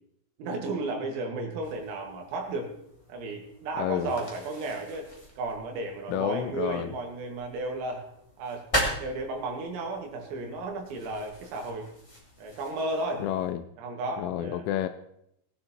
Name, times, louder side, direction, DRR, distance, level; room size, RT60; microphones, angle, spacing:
voice 1, 0.4-2.7 3.1-5.1 5.4-8.1 8.4-8.7 9.0-11.9 12.4-13.3 13.8-14.6, right 2 dB, 80° right, 2 dB, 4.6 m, -33 dB
sound 1, 1.6-13.5, equal, 15° left, 1.3 m, -39 dB
voice 2, 3.8-4.1 6.1-6.9 13.2-13.6 14.2-14.9, left 11 dB, 80° left, 9 dB, 2.9 m, -30 dB
18.5 x 9.1 x 4.4 m, 0.77 s
omnidirectional pair, 6.0 m